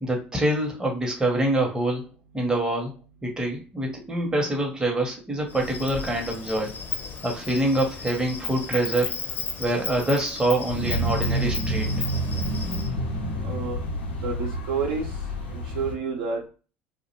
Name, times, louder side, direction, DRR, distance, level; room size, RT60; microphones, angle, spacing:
voice 1, 0.0-2.0 2.3-2.9 3.2-6.7 7.2-9.1 9.6-11.9, right 1 dB, 15° right, 1 dB, 0.7 m, -25 dB
Insect, 5.5-12.9, left 5 dB, 35° left, 0.6 m, -35 dB
sound 1, 10.7-15.9, right 1 dB, 85° left, 0.6 m, -28 dB
voice 2, 13.4-13.8 14.2-15.0 15.5-16.4, right 4 dB, 70° right, 0 dB, 0.8 m, -29 dB
2.4 x 2.1 x 2.8 m, 0.34 s
hypercardioid pair, 75°, 6 cm